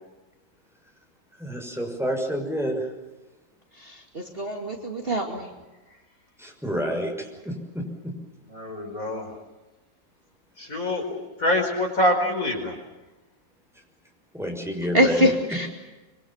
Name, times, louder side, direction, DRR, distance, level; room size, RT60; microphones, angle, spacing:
voice 1, 1.4-2.9 6.4-8.2 13.7-13.8 14.3-15.7, equal, ahead, 1 dB, 6.2 m, -29 dB
voice 2, 3.8-5.5 14.9-15.7, equal, 30° right, 2 dB, 2.7 m, -24 dB
voice 3, 8.5-9.3 10.6-12.8, left 1 dB, 45° left, 2 dB, 5.4 m, -25 dB
25.5 x 24.5 x 7.3 m, 1.1 s
omnidirectional pair, 2.0 m